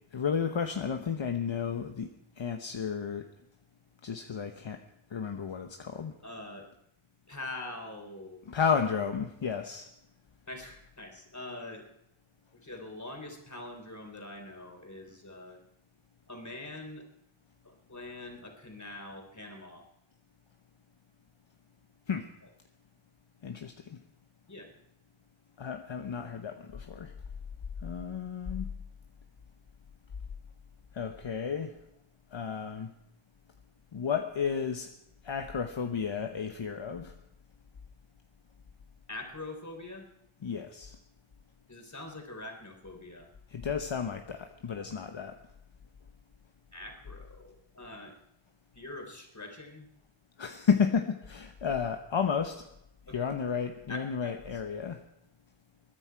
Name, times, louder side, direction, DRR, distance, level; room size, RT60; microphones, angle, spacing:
voice 1, 0.1-3.2 4.0-4.8 5.1-6.1 8.5-9.9 22.1-22.3 23.4-24.0 25.6-27.1 27.8-28.7 30.9-31.8 32.3-32.9 33.9-34.9 35.2-37.1 40.4-41.0 43.5-45.4 50.4-52.7 53.1-55.0, left 6 dB, 65° left, 5 dB, 1.0 m, -32 dB
voice 2, 6.2-6.6 7.3-8.4 10.5-11.8 12.5-15.6 16.3-17.0 17.6-19.8 24.5-24.7 39.1-40.1 41.7-43.3 44.7-44.9 46.7-48.1 48.7-49.9 53.1-53.3 53.9-54.6, left 2 dB, 35° left, 3 dB, 3.4 m, -44 dB
22.0 x 9.9 x 4.6 m, 0.79 s
wide cardioid pair, 45°, 49 cm